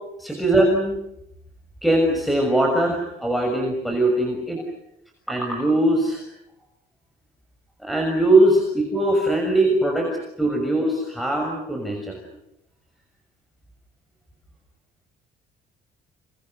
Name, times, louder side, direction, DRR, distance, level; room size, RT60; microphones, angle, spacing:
voice 1, 0.2-1.0 1.8-4.6 5.3-6.2 7.8-10.1 10.4-12.2, right 1 dB, ahead, 2 dB, 6.4 m, -21 dB
29.0 x 29.0 x 6.6 m, 0.81 s
cardioid pair, 110°, 17 cm